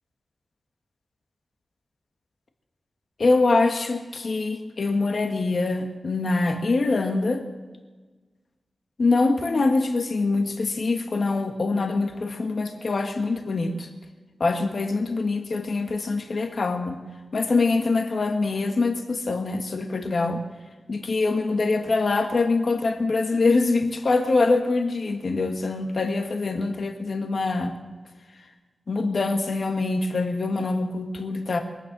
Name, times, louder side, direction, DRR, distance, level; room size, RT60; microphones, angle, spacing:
voice 1, 3.2-7.4 9.0-13.9 14.4-17.0 17.3-20.4 20.9-27.8 28.9-31.6, left 3 dB, 50° left, 5 dB, 1.6 m, -24 dB
23.0 x 9.3 x 6.1 m, 1.3 s
wide cardioid pair, 145°, 0 cm